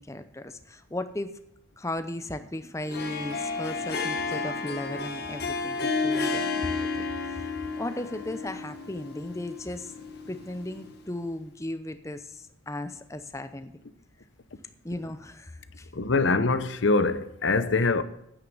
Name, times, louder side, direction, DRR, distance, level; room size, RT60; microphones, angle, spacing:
voice 1, 0.0-1.3 1.8-7.5 7.8-9.9 10.3-13.7 14.8-15.9, left 1 dB, 15° left, 0.6 m, -36 dB
Harp, 2.8-11.1, left 4 dB, 50° left, 1.6 m, -32 dB
voice 2, 15.9-18.0, left 3 dB, 70° left, 0.8 m, -24 dB
9.4 x 9.0 x 5.5 m
head